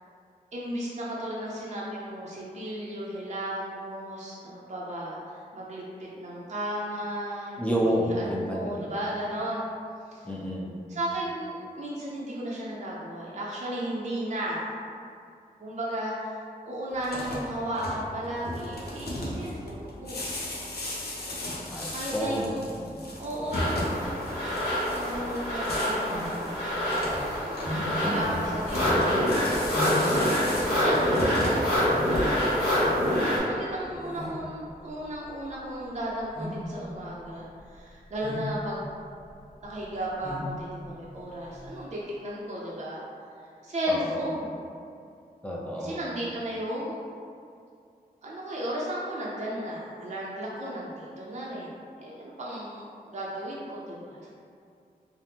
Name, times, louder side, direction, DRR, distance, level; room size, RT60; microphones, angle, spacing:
voice 1, 0.5-7.6 8.0-9.7 10.1-10.3 10.9-14.7 15.6-20.3 21.9-22.7 23.2-24.4 24.9-29.3 30.8-31.7 33.2-38.9 39.6-43.0 43.4-44.5 45.8-46.9 48.2-54.3, equal, 45° right, -6 dB, 0.5 m, -34 dB
voice 2, 7.6-8.9 10.2-10.7 21.5-22.5 22.8-23.0 27.8-28.4 31.0-31.6 33.9-34.4 43.9-44.2 45.4-46.0, equal, 10° left, -3 dB, 0.5 m, -31 dB
sound 1, 16.9-32.6, left 1 dB, 85° left, 0.5 m, -36 dB
sound 2, 23.5-33.4, equal, 70° left, 1.1 m, -26 dB
sound 3, 25.5-41.8, left 1 dB, 30° left, 1.2 m, -40 dB
3.3 x 2.0 x 2.7 m, 2.4 s
wide cardioid pair, 75°, 16 cm